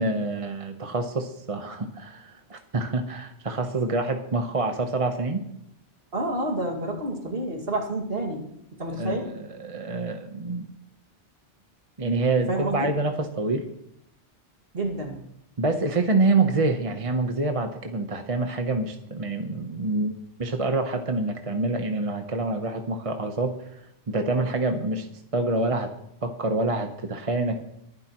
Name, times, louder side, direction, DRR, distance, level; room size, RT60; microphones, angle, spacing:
voice 1, 0.0-5.4 8.9-10.7 12.0-13.7 15.6-25.1 25.3-25.9 26.2-27.6, right 2 dB, 30° right, 5 dB, 1.0 m, -26 dB
voice 2, 6.1-9.3 12.5-12.9 14.7-15.2, right 1 dB, 55° right, 2 dB, 2.4 m, -29 dB
22.5 x 11.5 x 3.0 m, 0.77 s
omnidirectional pair, 1.2 m